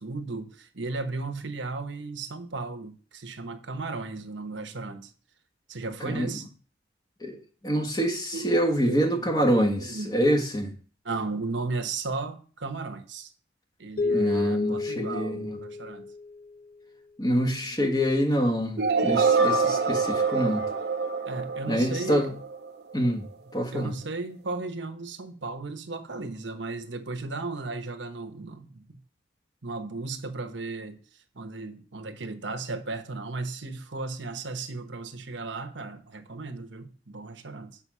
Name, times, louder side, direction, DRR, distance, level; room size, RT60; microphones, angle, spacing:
voice 1, 0.0-5.1 5.7-6.5 8.3-8.5 8.8-10.2 11.0-13.3 13.8-16.0 17.6-17.9 21.3-22.3 23.7-29.0 29.6-31.0 31.3-37.8, right 3 dB, 80° right, 1.1 m, -35 dB
voice 2, 7.6-10.7 14.1-15.6 17.2-20.6 21.7-22.3 22.9-23.2 23.5-23.9, equal, 20° left, 1.4 m, -26 dB
sound 1, 14.0-16.5, left 3 dB, 50° left, 0.4 m, -30 dB
sound 2, 18.8-22.7, right 4 dB, 60° right, 0.8 m, -25 dB
7.0 x 5.3 x 6.1 m
head